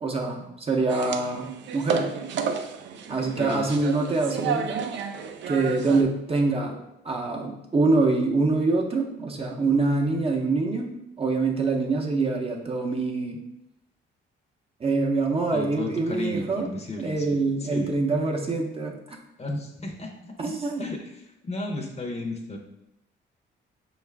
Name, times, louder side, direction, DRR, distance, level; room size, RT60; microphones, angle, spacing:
voice 1, 0.0-2.1 3.1-4.8 5.5-6.7 7.0-10.9 11.2-13.4 14.8-16.7 17.0-19.2 20.4-20.8, right 3 dB, 30° right, 1 dB, 0.6 m, -25 dB
sound 1, 0.9-6.0, right 6 dB, 65° right, 0.4 m, -32 dB
voice 2, 3.2-3.7 15.5-17.9 19.4-22.6, left 2 dB, 30° left, 2 dB, 0.7 m, -34 dB
5.0 x 2.4 x 3.3 m, 0.86 s
cardioid pair, 90°, 20 cm